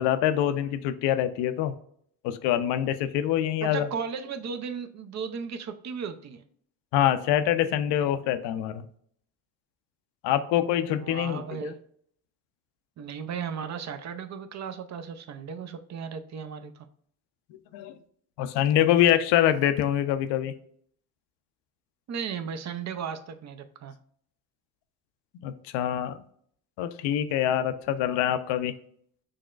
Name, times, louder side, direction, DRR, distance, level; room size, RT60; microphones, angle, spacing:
voice 1, 0.0-1.7 2.2-3.9 6.9-8.8 10.2-11.7 17.7-17.9 18.4-20.5 25.4-26.2 26.8-28.7, left 11 dB, 65° left, 11 dB, 0.6 m, -25 dB
voice 2, 3.6-6.4 10.9-11.8 13.0-16.9 22.1-24.0, right 6 dB, 40° right, 10 dB, 0.5 m, -35 dB
6.2 x 2.1 x 2.3 m, 0.64 s
supercardioid pair, 75°, 45 cm